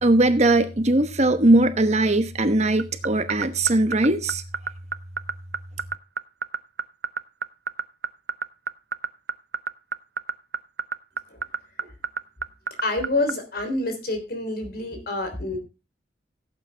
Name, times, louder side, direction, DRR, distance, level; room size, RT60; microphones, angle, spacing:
voice 1, 0.0-4.4, right 2 dB, 35° right, 1.0 m, -20 dB
sound 1, 2.8-13.3, right 5 dB, 55° right, 0.6 m, -27 dB
voice 2, 12.8-15.6, left 2 dB, 55° left, 3.4 m, -27 dB
16.5 x 8.7 x 3.4 m
head